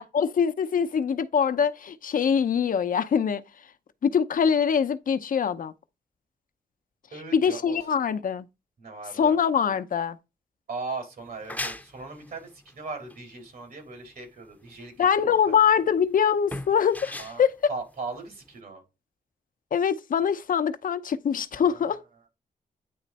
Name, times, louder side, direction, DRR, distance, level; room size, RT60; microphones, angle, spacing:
voice 1, 0.0-3.4 4.0-5.7 7.3-8.5 9.2-10.2 15.0-17.5 19.7-22.0, left 7 dB, 65° left, 0.7 m, -23 dB
voice 2, 7.1-7.8 8.8-9.4 10.7-15.5 17.2-17.4 17.7-18.8 21.5-21.9, right 3 dB, 75° right, 3.7 m, -38 dB
sound 1, 11.2-18.6, left 1 dB, 10° left, 0.8 m, -40 dB
9.4 x 3.2 x 4.1 m
cardioid pair, 85°, 15 cm